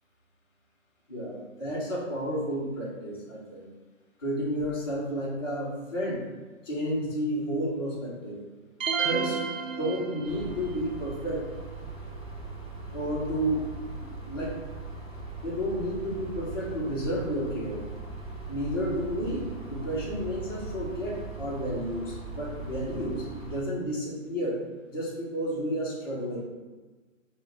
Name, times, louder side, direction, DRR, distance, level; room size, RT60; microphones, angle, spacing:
voice 1, 1.1-3.7 4.2-6.2 6.6-8.4 9.0-9.4 9.8-11.4 12.9-13.6 14.0-14.6 15.4-17.8 18.5-26.4, equal, 20° left, -10 dB, 0.7 m, -31 dB
sound 1, 8.8-10.6, right 6 dB, 75° right, 0.8 m, -30 dB
sound 2, 10.2-23.6, right 3 dB, 30° right, 0.7 m, -40 dB
3.9 x 2.2 x 3.9 m, 1.3 s
hypercardioid pair, 165°, 40 cm